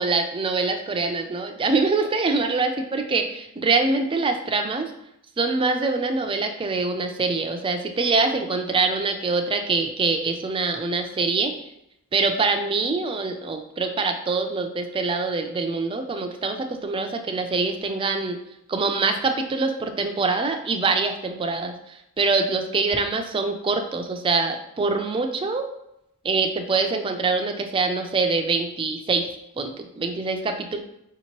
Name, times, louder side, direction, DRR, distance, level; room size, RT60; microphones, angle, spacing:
voice 1, 0.0-4.9 5.4-11.5 12.1-18.4 18.7-25.7 26.2-29.3 29.6-30.8, right 3 dB, 25° right, 5 dB, 0.4 m, -24 dB
5.0 x 2.8 x 3.0 m, 0.81 s
head